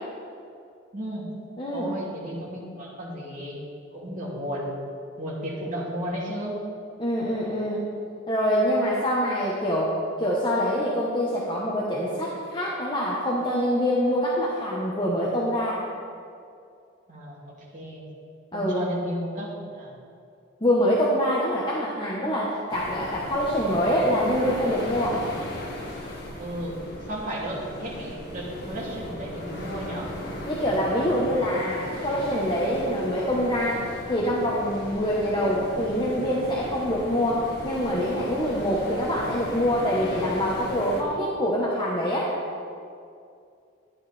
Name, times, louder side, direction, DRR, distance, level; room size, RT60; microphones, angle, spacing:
voice 1, 0.9-1.3 1.7-3.6 3.9-4.7 5.2-6.6 17.1-18.0 18.5-19.9 26.4-26.8 27.1-30.1, equal, 40° right, -5 dB, 2.9 m, -34 dB
voice 2, 1.6-1.9 7.0-7.8 8.3-9.9 10.2-15.8 18.5-18.9 20.6-25.2 30.5-42.3, equal, 25° left, -5 dB, 1.3 m, -25 dB
sound 1, 22.7-41.0, left 1 dB, 55° left, 2.0 m, -37 dB
13.0 x 9.9 x 4.3 m, 2.4 s
head